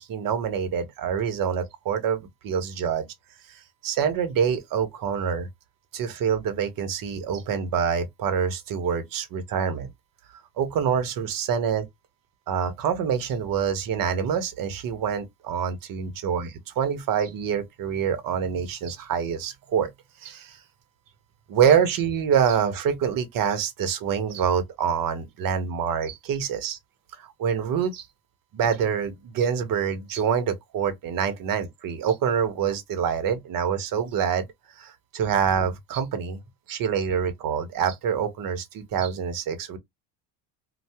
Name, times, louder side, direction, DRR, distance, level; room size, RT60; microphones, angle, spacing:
voice 1, 0.0-3.1 3.8-5.5 5.9-9.9 10.6-11.9 12.5-19.9 20.2-20.6 21.5-26.8 27.2-28.0 28.5-34.5 34.8-36.4 36.7-39.8, right 7 dB, 55° right, 1.0 m, -26 dB
2.7 x 2.3 x 3.4 m
supercardioid pair, 90°, 41 cm